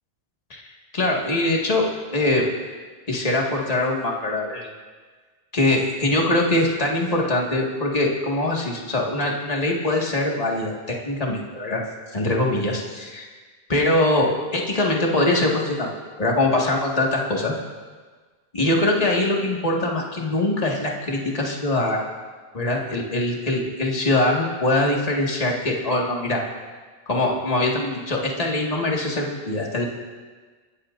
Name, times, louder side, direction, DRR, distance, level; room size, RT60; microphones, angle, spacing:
voice 1, 0.9-1.8 2.1-2.5 3.1-4.7 5.5-11.8 12.1-13.3 13.7-15.9 16.2-17.5 18.5-22.0 22.5-26.4 27.1-29.8, left 2 dB, 35° left, -2 dB, 1.9 m, -22 dB
30.0 x 13.5 x 2.6 m, 1.4 s
omnidirectional pair, 1.1 m